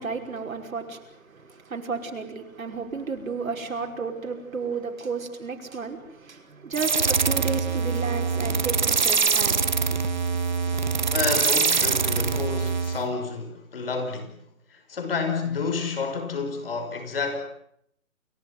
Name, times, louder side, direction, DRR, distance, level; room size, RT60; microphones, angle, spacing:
voice 1, 0.0-9.7, right 4 dB, 70° right, 5.6 m, -33 dB
sound 1, 6.7-13.1, right 5 dB, 35° right, 1.0 m, -24 dB
voice 2, 11.1-14.4 14.7-17.4, left 4 dB, 40° left, 5.5 m, -30 dB
29.0 x 16.5 x 9.5 m
hypercardioid pair, 175°, 42 cm